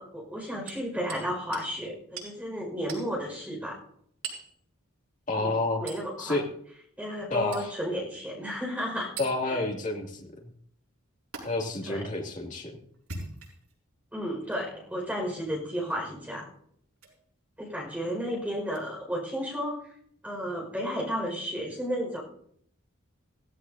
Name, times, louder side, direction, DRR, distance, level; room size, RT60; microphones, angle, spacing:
voice 1, 0.0-3.8 5.4-6.4 7.0-9.1 9.5-9.6 11.8-12.1 14.1-16.5 17.6-19.8 20.2-22.2, equal, 5° right, -1 dB, 5.4 m, -33 dB
Hammer, 0.7-1.3 1.5-1.7 2.2-2.3 2.9-3.1 4.2-4.5 5.9-6.1 7.5-7.7 9.2-9.3 11.3-11.4 12.9-13.7 14.5-14.6 15.9-16.1 17.0-17.2 18.7-18.8, right 4 dB, 90° right, 6.1 m, -40 dB
voice 2, 5.3-5.8 6.2-6.4 7.3-7.7 9.2-10.1 11.4-12.7, left 2 dB, 35° left, 0 dB, 2.5 m, -29 dB
16.0 x 16.0 x 2.8 m, 0.65 s
head